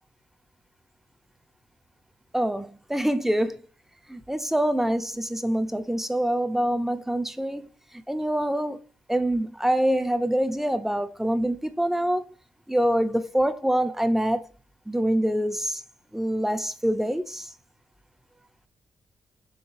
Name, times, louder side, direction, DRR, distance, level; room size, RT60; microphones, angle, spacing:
voice 1, 2.3-3.6 4.1-7.7 8.1-8.8 9.1-12.3 12.7-14.4 14.9-15.8 16.1-17.5, right 1 dB, 5° right, 0.5 m, -25 dB
5.6 x 3.5 x 2.5 m
cardioid pair, 105°, 8 cm